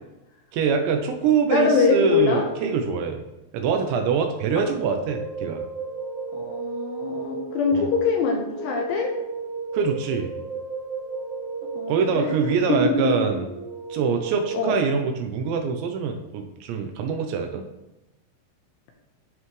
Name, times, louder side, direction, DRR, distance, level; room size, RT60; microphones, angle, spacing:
voice 1, 0.5-3.2 3.5-5.6 7.7-7.9 9.7-10.3 11.9-13.5 13.9-17.6, right 6 dB, 80° right, 5 dB, 2.8 m, -24 dB
voice 2, 1.5-2.4 6.3-9.1 11.8-12.3 12.7-13.1 14.5-14.8, left 4 dB, 75° left, 1 dB, 2.8 m, -23 dB
sound 1, 4.5-14.8, right 4 dB, 25° right, 1.7 m, -34 dB
12.5 x 5.5 x 3.2 m, 0.97 s
omnidirectional pair, 5.6 m